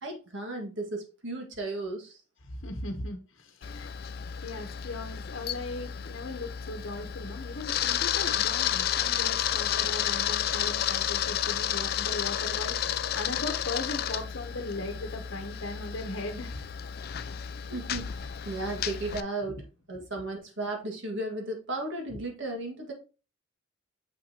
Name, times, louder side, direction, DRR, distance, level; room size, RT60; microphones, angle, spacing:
voice 1, 0.0-2.2 17.7-19.6 19.9-22.9, right 2 dB, 65° right, 1.9 m, -35 dB
voice 2, 2.5-3.9 4.4-16.7 19.5-19.6 19.9-20.1, left 2 dB, 65° left, 0.9 m, -38 dB
Camera, 3.6-19.2, left 10 dB, 45° left, 0.3 m, -31 dB
7.2 x 5.9 x 2.9 m
head